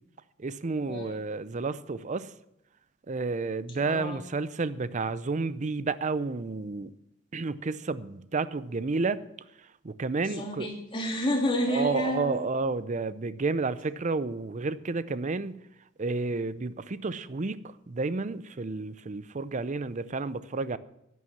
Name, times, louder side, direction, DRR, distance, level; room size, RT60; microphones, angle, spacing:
voice 1, 0.4-2.3 3.1-6.9 7.3-9.2 9.8-10.7 11.7-15.6 16.0-20.8, right 3 dB, 40° right, 0.6 m, -31 dB
voice 2, 3.7-4.2 10.2-12.4, equal, 25° left, 2.7 m, -30 dB
11.0 x 9.4 x 7.4 m
head